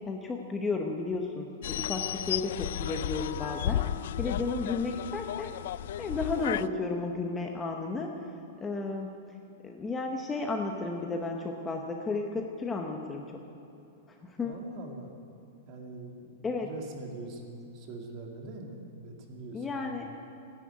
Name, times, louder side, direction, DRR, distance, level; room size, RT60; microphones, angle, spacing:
voice 1, 0.1-3.8 4.2-5.5 6.0-8.1 8.6-9.2 9.6-13.3 14.1-14.5 16.4-16.7 19.5-20.1, left 3 dB, 10° left, 2 dB, 0.7 m, -33 dB
sound 1, 1.6-6.7, left 11 dB, 60° left, 0.3 m, -33 dB
voice 2, 14.4-15.1 15.7-20.0, right 2 dB, 30° right, 2 dB, 2.1 m, -43 dB
14.5 x 10.5 x 9.5 m, 2.8 s
supercardioid pair, 175°, 0 cm